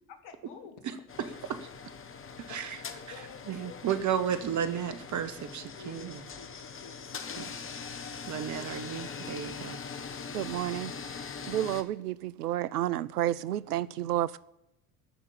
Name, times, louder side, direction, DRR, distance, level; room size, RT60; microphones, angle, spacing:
voice 1, 0.2-0.9 1.2-1.4 2.3-4.1 5.8-7.8, left 6 dB, 55° left, 8 dB, 2.4 m, -51 dB
voice 2, 0.8-1.6 2.5-2.8 3.1-6.2 7.4-7.5 8.2-9.8, right 8 dB, 40° right, 11 dB, 1.6 m, -33 dB
sound 1, 1.1-11.8, left 5 dB, 25° left, 1.5 m, -42 dB
voice 3, 10.3-14.4, right 13 dB, 85° right, 20 dB, 0.6 m, -31 dB
14.0 x 6.0 x 9.9 m, 0.86 s
hypercardioid pair, 75°, 46 cm